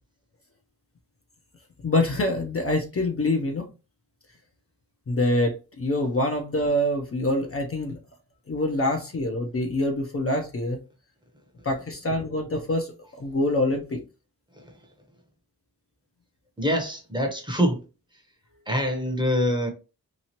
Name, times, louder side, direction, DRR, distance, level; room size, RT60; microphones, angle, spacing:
voice 1, 1.8-3.7 5.1-8.0 8.5-10.8 11.6-14.0, left 1 dB, 35° left, 0.6 m, -25 dB
voice 2, 16.6-17.8 18.7-19.7, equal, 10° right, 0.9 m, -25 dB
3.0 x 2.4 x 2.8 m
cardioid pair, 60°, 38 cm